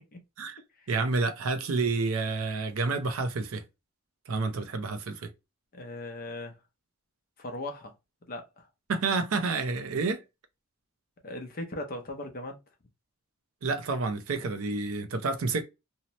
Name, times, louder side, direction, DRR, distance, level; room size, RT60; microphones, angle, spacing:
voice 1, 0.9-3.6 4.3-5.3 8.9-10.2 13.6-15.6, right 3 dB, 75° right, 0.5 m, -29 dB
voice 2, 5.7-6.6 7.4-7.9 8.3-8.7 11.2-12.6, left 1 dB, 40° left, 0.6 m, -38 dB
2.7 x 2.1 x 2.8 m
head